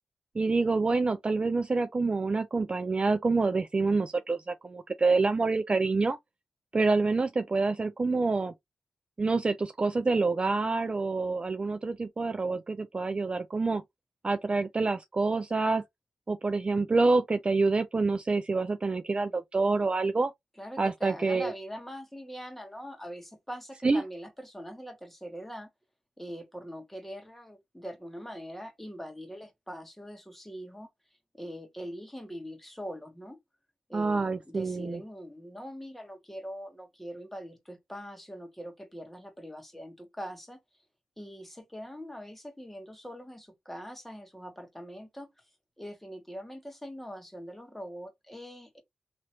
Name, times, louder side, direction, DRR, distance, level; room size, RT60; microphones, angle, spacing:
voice 1, 0.3-6.2 6.7-8.5 9.2-13.8 14.2-15.8 16.3-20.3 20.8-21.5 23.8-24.0 33.9-35.0, right 3 dB, 35° right, 0.4 m, -27 dB
voice 2, 20.6-25.7 26.2-30.9 31.3-33.4 33.9-40.6 41.2-45.3 45.8-48.8, equal, 5° left, 1.5 m, -42 dB
3.0 x 2.9 x 2.9 m
cardioid pair, 50°, 3 cm